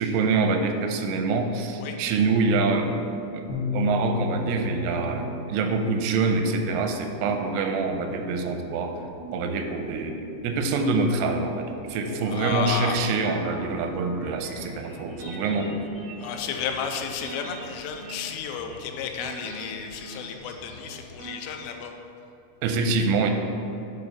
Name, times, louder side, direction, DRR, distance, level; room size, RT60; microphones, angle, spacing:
voice 1, 0.0-8.9 9.3-15.8 22.6-23.3, right 3 dB, 90° right, 5 dB, 3.2 m, -25 dB
sound 1, 3.5-7.6, left 4 dB, 70° left, 2.7 m, -33 dB
sound 2, 4.4-21.4, right 1 dB, 70° right, 1.2 m, -43 dB
voice 2, 12.3-13.0 16.2-21.9, left 7 dB, 85° left, 4 dB, 3.3 m, -32 dB
9.5 x 4.3 x 5.4 m, 2.9 s
omnidirectional pair, 5.7 m